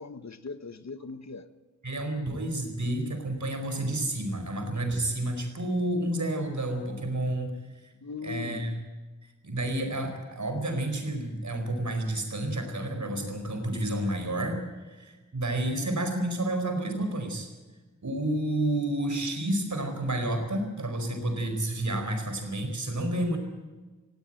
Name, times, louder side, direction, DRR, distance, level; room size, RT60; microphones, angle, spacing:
voice 1, 0.0-1.5 8.0-8.8, left 5 dB, 60° left, 1.1 m, -39 dB
voice 2, 1.8-7.6 8.2-8.7 9.2-17.5 18.0-23.4, right 1 dB, 70° right, 4.8 m, -30 dB
18.5 x 16.5 x 9.1 m
wide cardioid pair, 65°, 31 cm